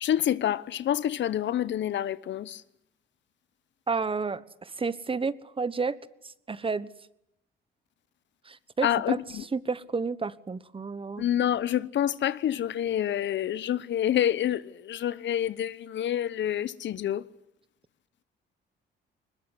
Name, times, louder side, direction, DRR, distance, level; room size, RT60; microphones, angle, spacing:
voice 1, 0.0-2.5 8.8-9.1 11.2-14.6 14.9-17.2, left 11 dB, 65° left, 1.0 m, -27 dB
voice 2, 3.9-6.0 6.5-6.9 8.5-11.2, right 4 dB, 25° right, 1.3 m, -31 dB
22.0 x 21.0 x 9.7 m
cardioid pair, 90°, 20 cm